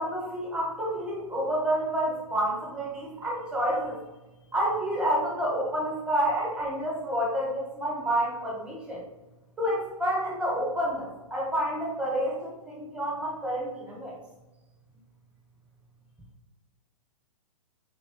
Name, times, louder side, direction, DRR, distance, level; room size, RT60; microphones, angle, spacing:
voice 1, 0.0-4.0 4.5-9.0 9.6-14.1, equal, 5° right, -4 dB, 1.1 m, -29 dB
3.5 x 3.3 x 2.8 m, 1.1 s
hypercardioid pair, 130°, 18 cm